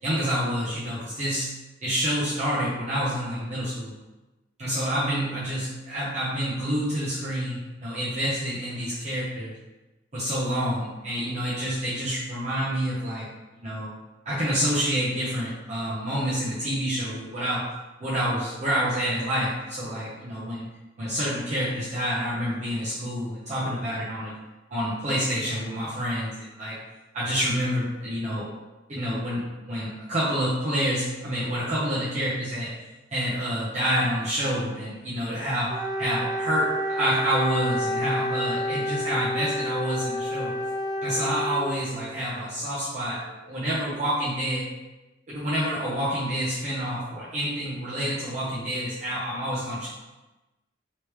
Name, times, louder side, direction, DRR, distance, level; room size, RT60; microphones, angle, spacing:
voice 1, 0.0-1.5 1.8-3.9 4.6-9.5 10.1-13.3 13.6-13.9 14.2-17.6 18.0-20.6 21.0-24.3 24.7-26.8 27.1-28.5 28.9-32.7 33.1-36.7 36.9-40.5 41.0-43.2 43.5-44.6 45.3-49.9, equal, 40° right, -9 dB, 0.8 m, -28 dB
Wind instrument woodwind instrument, 35.7-42.1, equal, 20° right, 0.3 m, -29 dB
Wind instrument woodwind instrument 2, 36.6-43.9, left 3 dB, 80° left, 0.6 m, -49 dB
3.3 x 3.1 x 3.1 m, 1.1 s
head